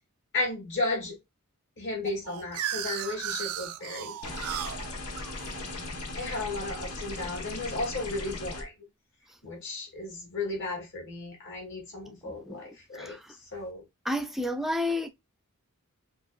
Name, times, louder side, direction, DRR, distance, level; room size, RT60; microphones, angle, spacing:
voice 1, 0.3-1.2 1.8-4.8 6.2-8.7 9.4-13.2 13.5-13.8, left 2 dB, 55° left, 2.4 m, -34 dB
sound 1, 2.0-6.8, right 10 dB, 75° right, 0.4 m, -36 dB
sound 2, 4.2-8.6, left 2 dB, 90° left, 1.1 m, -38 dB
voice 2, 12.2-12.6 12.9-13.4 14.0-15.1, left 1 dB, ahead, 0.4 m, -31 dB
5.8 x 2.6 x 2.3 m
head